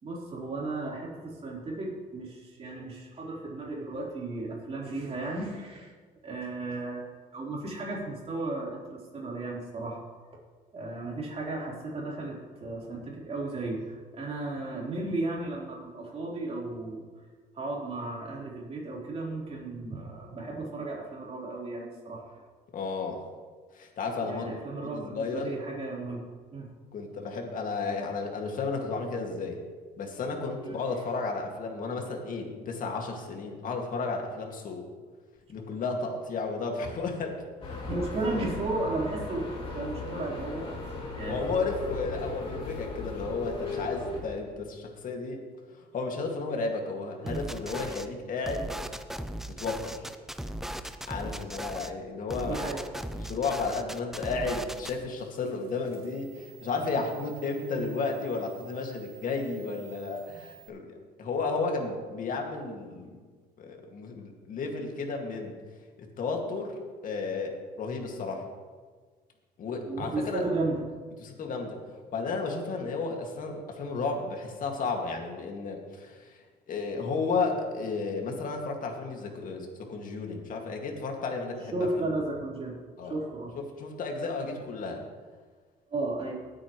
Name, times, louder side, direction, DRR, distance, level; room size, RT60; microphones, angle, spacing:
voice 1, 0.0-5.9 6.2-7.1 7.3-10.0 10.7-17.0 17.5-22.4 24.2-26.2 26.5-26.7 30.6-30.8 37.9-40.8 41.2-41.6 47.2-47.4 52.4-52.8 57.7-57.9 69.8-70.8 81.7-82.7 83.0-83.5 84.5-84.6 85.9-86.4, right 2 dB, 35° right, -4 dB, 4.1 m, -34 dB
voice 2, 22.7-23.2 23.7-24.5 24.8-25.6 26.9-29.6 30.0-34.9 35.5-37.9 41.3-45.5 45.8-48.6 49.6-50.0 51.1-52.7 53.2-63.2 63.6-65.6 66.0-68.5 69.6-70.4 71.2-71.8 72.1-76.4 76.7-81.9 83.0-83.2 83.6-85.0, left 4 dB, 55° left, 2 dB, 2.2 m, -33 dB
sound 1, 37.6-44.2, left 3 dB, 35° left, 2.8 m, -37 dB
sound 2, 47.3-48.1 48.4-51.9 52.3-54.9, right 1 dB, ahead, 0.6 m, -37 dB
sound 3, 54.4-60.7, right 15 dB, 70° right, 3.1 m, -54 dB
19.5 x 8.8 x 3.2 m, 1.5 s
cardioid pair, 110°, 17 cm